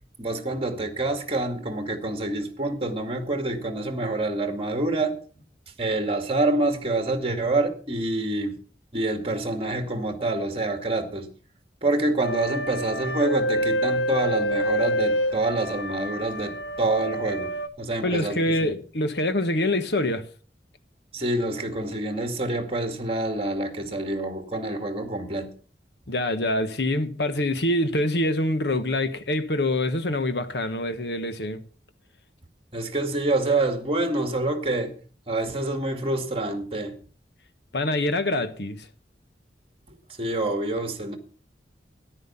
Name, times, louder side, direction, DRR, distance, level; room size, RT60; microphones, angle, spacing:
voice 1, 0.2-5.1 5.8-8.6 8.9-11.3 11.8-17.5 17.8-18.7 21.1-25.5 32.7-34.9 35.3-37.0 40.2-41.2, right 2 dB, 35° right, 2.2 m, -27 dB
sound 1, 12.2-17.7, equal, 85° left, 1.5 m, -27 dB
voice 2, 18.0-20.3 26.1-31.6 37.7-38.9, left 1 dB, 70° left, 1.4 m, -25 dB
13.5 x 10.5 x 5.7 m
head